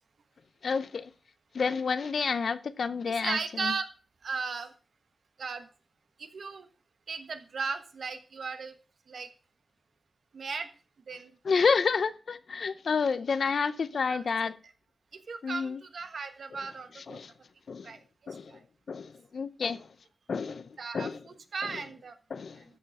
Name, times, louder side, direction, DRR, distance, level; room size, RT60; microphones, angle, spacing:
voice 1, 0.6-1.1 1.5-3.7 11.4-14.6 15.4-15.8 16.9-17.3 17.7-17.9 18.3-18.5 18.9-19.9 20.3-20.7 20.9-21.2 21.6-21.8 22.3-22.6, left 5 dB, 70° left, 0.6 m, -29 dB
voice 2, 3.1-3.9 4.2-4.7 5.4-5.7 6.2-6.7 7.1-8.7 9.1-9.3 10.3-10.7 11.1-11.6 14.1-14.2 15.3-17.2 17.8-18.0 18.5-18.6 20.8-22.1, right 4 dB, 75° right, 1.2 m, -36 dB
13.5 x 6.4 x 3.5 m
wide cardioid pair, 100°, 0 cm